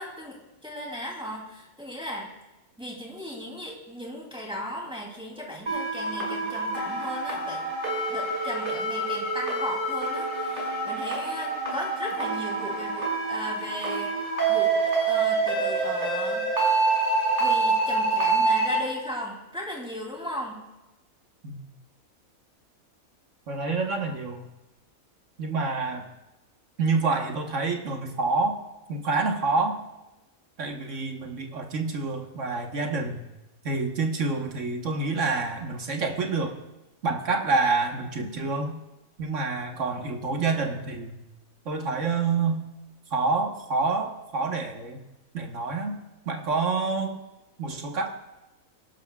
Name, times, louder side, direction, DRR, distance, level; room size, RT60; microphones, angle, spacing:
voice 1, 0.0-2.3 2.8-7.6 8.1-16.5 17.4-20.7, equal, 5° right, -2 dB, 2.9 m, -37 dB
sound 1, 5.7-18.8, right 3 dB, 35° right, 6.1 m, -26 dB
voice 2, 23.5-24.4 25.4-26.1 26.8-28.6 28.9-29.8 30.6-33.3 33.6-36.5 37.0-38.8 39.2-41.2 41.6-42.6 43.1-45.0 45.3-47.2 47.6-48.1, right 3 dB, 60° right, 2 dB, 1.6 m, -27 dB
26.0 x 12.0 x 2.4 m, 1.0 s
omnidirectional pair, 1.5 m